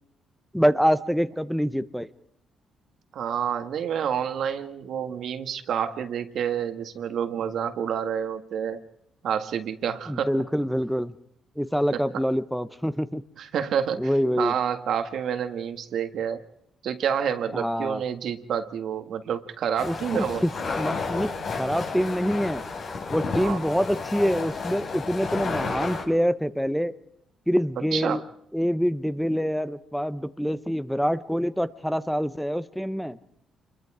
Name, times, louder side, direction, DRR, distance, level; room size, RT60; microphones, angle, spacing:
voice 1, 0.5-2.1 10.1-11.1 11.6-13.2 14.0-14.5 17.5-18.0 19.8-20.5 20.8-21.3 21.6-22.6 23.1-26.9 27.5-28.2 28.5-33.2, equal, ahead, 13 dB, 1.0 m, -25 dB
voice 2, 3.1-8.8 9.2-10.3 11.9-12.0 13.4-14.1 14.4-16.4 16.8-20.4 23.4-23.6 27.9-28.2, right 8 dB, 70° right, 8 dB, 1.7 m, -28 dB
sound 1, 19.8-26.0, left 4 dB, 55° left, 5.0 m, -31 dB
27.5 x 22.0 x 4.9 m, 0.74 s
cardioid pair, 90°, 0 cm